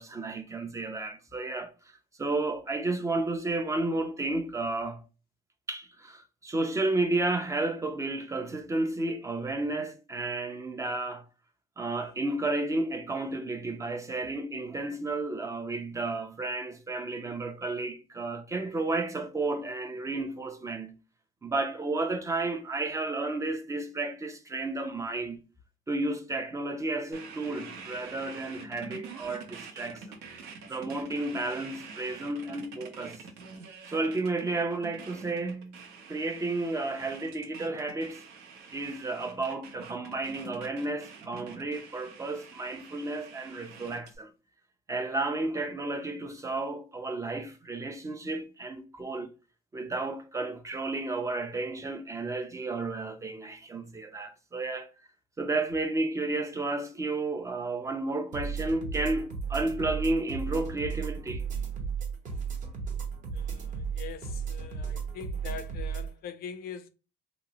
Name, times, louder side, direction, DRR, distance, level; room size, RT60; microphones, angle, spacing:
voice 1, 0.0-5.0 5.7-11.2 11.8-21.0 21.4-25.4 25.9-30.2 30.7-33.2 33.9-38.2 38.7-44.3 44.9-49.3 49.7-54.9 55.4-61.5, right 2 dB, 20° right, 0.4 m, -32 dB
sound 1, 27.1-44.2, right 5 dB, 85° right, 0.6 m, -46 dB
sound 2, 58.3-66.1, right 6 dB, 45° right, 0.8 m, -34 dB
voice 2, 63.3-66.9, left 7 dB, 65° left, 0.4 m, -43 dB
2.9 x 2.0 x 2.7 m
cardioid pair, 110°, 17 cm